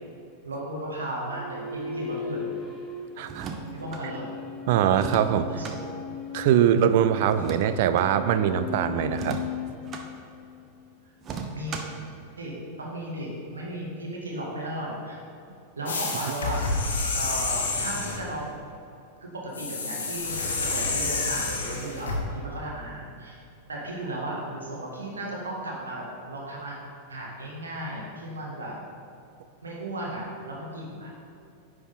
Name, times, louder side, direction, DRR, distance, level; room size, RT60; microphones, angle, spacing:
voice 1, 0.4-2.5 3.7-4.4 5.5-5.8 11.5-11.9 12.4-15.2 15.8-16.6 16.9-18.7 19.2-23.4 23.7-26.8 27.1-28.8 29.6-31.1, right 1 dB, 70° right, -3 dB, 1.8 m, -35 dB
sound 1, 1.3-10.9, left 6 dB, 10° left, 1.1 m, -38 dB
sound 2, 3.2-4.0 4.9-5.8 7.3-8.1 9.1-10.1 11.2-12.0, right 5 dB, 30° right, 0.7 m, -37 dB
voice 2, 3.2-3.5 4.7-5.5 6.3-9.4, right 9 dB, 50° right, 11 dB, 0.4 m, -22 dB
sound 3, 15.9-18.3 19.5-22.2, left 3 dB, 65° left, 1.2 m, -29 dB
10.0 x 4.8 x 4.1 m, 2.7 s
figure-of-eight pair, 90°, 0 cm